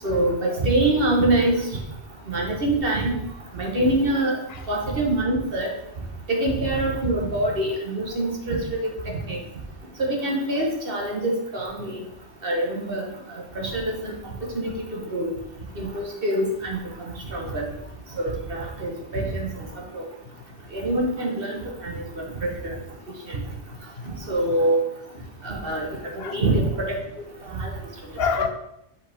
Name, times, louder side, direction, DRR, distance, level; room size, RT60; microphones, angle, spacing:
voice 1, 0.0-1.6 2.3-3.1 3.5-4.4 4.7-5.7 6.3-8.9 9.3-9.4 10.0-12.0 12.4-13.1 13.5-14.1 14.4-15.3 15.8-17.6 18.2-19.5 19.9-20.0 20.7-22.7 23.3-23.4 24.0-24.8 25.4-25.9 26.3-26.9 27.5-27.7, right 1 dB, 50° right, 0 dB, 1.5 m, -25 dB
voice 2, 23.7-24.3 25.4-25.5 26.2-26.4 28.1-28.5, left 6 dB, 65° left, 8 dB, 0.8 m, -29 dB
7.5 x 5.2 x 3.5 m, 0.82 s
omnidirectional pair, 1.2 m